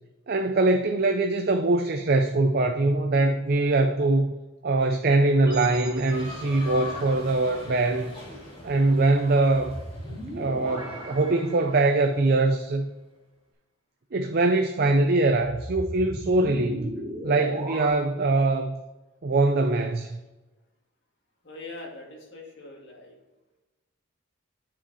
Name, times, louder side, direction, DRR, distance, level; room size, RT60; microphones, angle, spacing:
voice 1, 0.3-4.3 4.6-8.1 8.6-9.8 10.4-12.9 14.1-16.9 17.2-18.8 19.2-20.2, right 2 dB, 45° right, 5 dB, 0.5 m, -23 dB
sound 1, 5.4-6.8 9.5-12.2 15.4-17.9, right 1 dB, 15° right, 2.3 m, -37 dB
sound 2, 6.1-12.2, left 2 dB, 25° left, 2.4 m, -42 dB
voice 2, 21.4-23.2, left 2 dB, 55° left, -2 dB, 2.2 m, -42 dB
8.7 x 5.0 x 4.1 m, 1.1 s
head